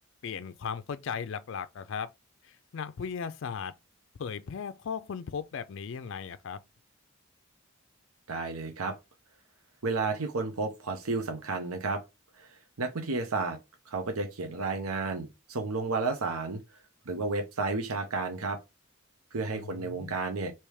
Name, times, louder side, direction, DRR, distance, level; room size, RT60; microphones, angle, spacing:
voice 1, 0.2-2.1 2.4-3.7 4.2-6.6 19.6-20.1, left 6 dB, 60° left, 0.4 m, -37 dB
voice 2, 8.3-8.9 9.8-12.0 12.4-13.6 13.9-16.6 17.1-18.6 19.3-20.5, right 3 dB, 85° right, 0.8 m, -32 dB
3.3 x 3.0 x 4.7 m
head